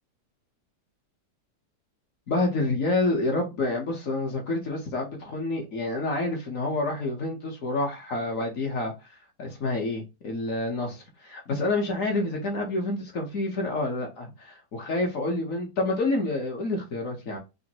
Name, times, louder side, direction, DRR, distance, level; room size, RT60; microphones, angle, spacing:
voice 1, 2.3-8.9 9.4-17.4, left 2 dB, 55° left, 1.2 m, -28 dB
5.1 x 2.1 x 2.8 m
omnidirectional pair, 1.8 m